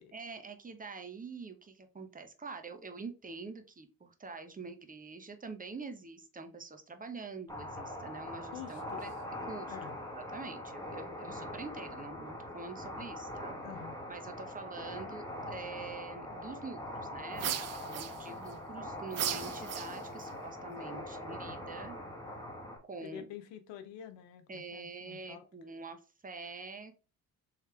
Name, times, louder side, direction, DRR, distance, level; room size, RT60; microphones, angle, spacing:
voice 1, 0.1-9.1 9.4-13.5 14.1-22.0 22.8-23.3 24.5-26.9, right 4 dB, 20° right, 0.8 m, -45 dB
sound 1, 7.5-22.8, left 1 dB, 10° left, 1.3 m, -42 dB
voice 2, 8.5-9.1 9.7-10.0 11.2-11.4 13.6-14.0 23.0-25.4, left 10 dB, 75° left, 0.7 m, -48 dB
sound 2, 17.4-18.5 19.1-20.3, right 10 dB, 40° right, 0.4 m, -37 dB
3.3 x 3.2 x 3.2 m
hypercardioid pair, 45°, 45 cm